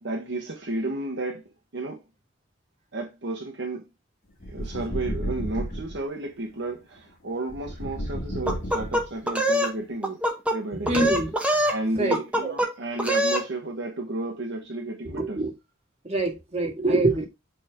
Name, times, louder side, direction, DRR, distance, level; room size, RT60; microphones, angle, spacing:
voice 1, 0.0-1.5 1.7-2.0 2.9-3.8 4.5-10.2 10.5-10.9 11.6-15.4, right 2 dB, 65° right, 1.3 m, -32 dB
sound 1, 4.4-6.0 7.5-9.3, equal, 50° left, 1.7 m, -32 dB
sound 2, 8.5-9.7 10.0-10.6 10.9-11.8 12.1-12.7 13.0-13.4, equal, 5° right, 1.2 m, -24 dB
voice 2, 10.8-11.3 11.9-12.6 15.0-15.5 16.0-17.2, right 2 dB, 35° right, 2.1 m, -25 dB
8.4 x 3.6 x 3.7 m
head